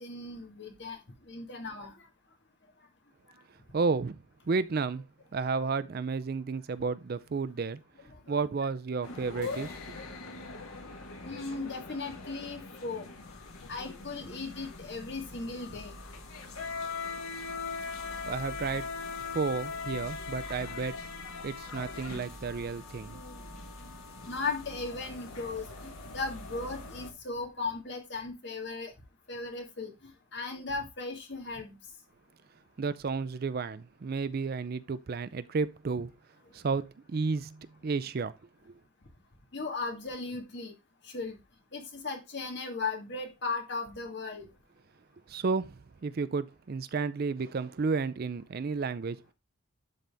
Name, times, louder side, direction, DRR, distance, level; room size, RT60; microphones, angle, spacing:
voice 1, 0.0-1.9 8.1-8.3 11.2-13.1 13.7-16.0 24.3-28.9 29.3-31.8 39.5-40.8 41.0-41.4 41.7-44.5, left 3 dB, 55° left, 1.8 m, -37 dB
voice 2, 3.7-5.0 5.3-7.8 8.3-9.8 18.3-18.9 19.3-21.0 21.4-23.2 32.8-36.1 36.5-38.3 45.3-49.2, right 4 dB, 45° right, 0.4 m, -32 dB
sound 1, 9.0-27.1, left 4 dB, 85° left, 1.5 m, -41 dB
12.0 x 3.9 x 3.4 m
head